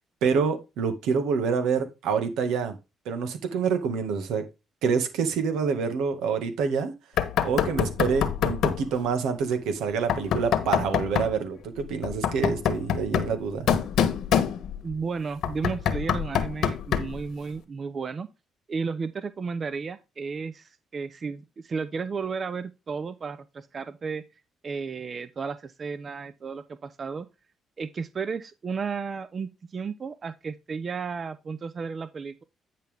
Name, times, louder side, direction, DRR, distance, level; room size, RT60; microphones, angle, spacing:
voice 1, 0.2-2.8 3.1-4.4 4.8-6.9 7.4-13.7, right 5 dB, 90° right, 2.0 m, -27 dB
Knock, 7.2-8.9 10.1-11.4 12.0-14.9 15.4-17.2, left 8 dB, 75° left, 1.3 m, -26 dB
voice 2, 14.8-18.3 18.7-24.2 24.6-27.3 27.8-32.4, right 5 dB, 40° right, 0.7 m, -33 dB
9.7 x 5.8 x 3.6 m
cardioid pair, 90°, 0 cm